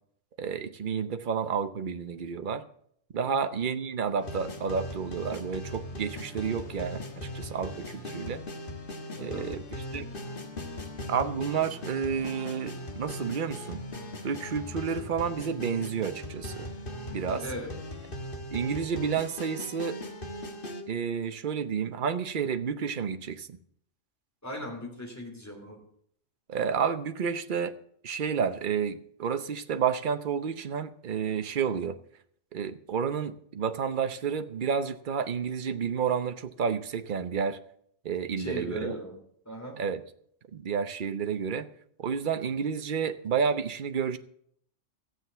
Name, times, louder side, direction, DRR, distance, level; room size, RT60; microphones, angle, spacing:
voice 1, 0.4-2.6 3.1-8.4 9.2-10.1 11.1-13.8 14.2-16.7 17.1-17.4 18.5-20.0 20.9-23.5 26.5-27.7 28.0-32.0 32.5-37.6 38.0-38.9 39.8-40.0 40.5-41.7 42.0-44.2, right 6 dB, 45° right, 10 dB, 0.9 m, -30 dB
voice 2, 3.2-3.5 8.1-8.3 9.2-9.5 17.4-17.7 24.4-25.8 38.4-39.2 39.4-39.8, equal, 10° left, 1 dB, 3.3 m, -39 dB
sound 1, 4.2-20.8, left 1 dB, 45° left, 1.7 m, -39 dB
14.5 x 7.7 x 6.9 m, 0.66 s
omnidirectional pair, 1.3 m